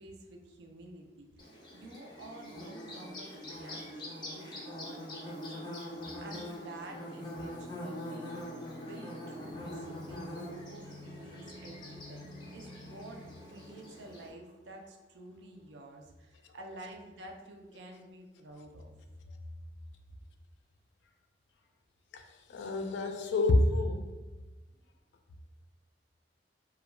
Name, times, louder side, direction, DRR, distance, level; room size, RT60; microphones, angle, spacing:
voice 1, 0.0-8.3 8.7-18.9 19.2-19.4 20.1-20.2, right 1 dB, 80° right, 2 dB, 0.4 m, -50 dB
Bird / Buzz, 1.4-14.3, left 1 dB, 25° left, 0.5 m, -44 dB
Bowed string instrument, 7.0-10.6, left 2 dB, 50° left, 0.8 m, -53 dB
sound 1, 9.2-14.9 15.2-15.3, left 1 dB, 60° right, 0.8 m, -51 dB
voice 2, 22.5-24.1, left 2 dB, 80° left, 6 dB, 0.3 m, -28 dB
2.3 x 2.1 x 3.0 m, 1.2 s
head